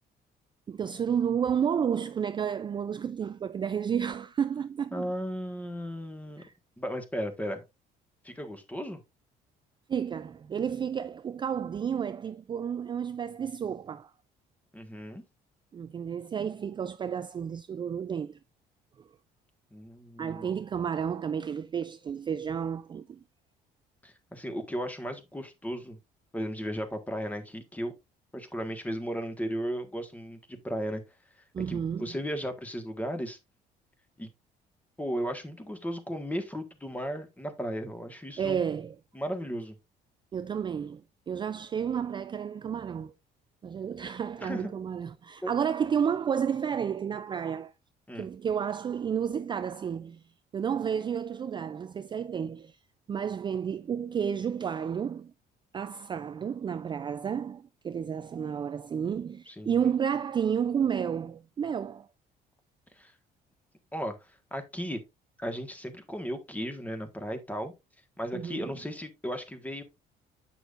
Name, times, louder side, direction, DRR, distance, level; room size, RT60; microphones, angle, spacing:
voice 1, 0.7-5.1 6.4-6.5 9.9-14.1 15.7-18.4 19.0-19.1 20.2-23.2 31.5-32.1 38.4-38.9 40.3-43.1 43.6-47.7 48.2-50.2 50.5-52.8 53.1-55.3 55.7-62.1 68.3-68.7, right 7 dB, 25° right, 0.3 m, -31 dB
voice 2, 4.9-6.4 6.8-7.6 8.2-9.0 14.7-15.2 19.7-20.5 24.0-26.0 26.3-27.9 28.3-31.0 31.7-33.4 34.2-34.3 35.0-38.6 39.1-39.7 44.4-44.7 45.4-45.5 48.1-48.3 59.5-59.8 63.0-63.1 63.9-64.1 64.5-65.0 65.4-67.7 68.2-69.8, equal, 10° left, 1.5 m, -35 dB
8.2 x 6.1 x 2.5 m
cardioid pair, 110°, 17 cm